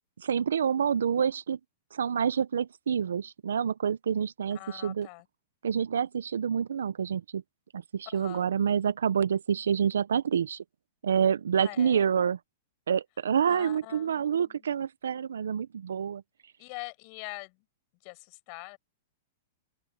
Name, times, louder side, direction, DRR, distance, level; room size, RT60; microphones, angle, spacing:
voice 1, 0.2-1.6 1.9-5.1 5.6-7.4 7.7-10.6 11.0-12.4 12.9-16.2, right 7 dB, 90° right, 0.7 m, -27 dB
voice 2, 4.5-5.3 8.1-8.5 11.6-12.1 13.4-14.7 16.6-17.6 18.0-18.8, left 38 dB, 45° left, 6.0 m, -44 dB
open air
hypercardioid pair, 130°, 0 cm